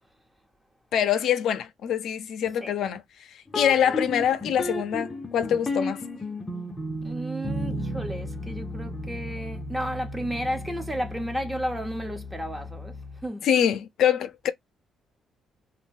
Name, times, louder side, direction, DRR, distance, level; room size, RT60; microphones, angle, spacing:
voice 1, 0.9-3.0 3.5-6.0 13.4-14.5, left 9 dB, 75° left, 0.5 m, -24 dB
sound 1, 3.5-13.3, left 1 dB, 20° left, 0.7 m, -34 dB
voice 2, 7.0-13.0 13.2-13.5, equal, 10° right, 0.9 m, -33 dB
2.6 x 2.2 x 3.4 m
cardioid pair, 90°, 0 cm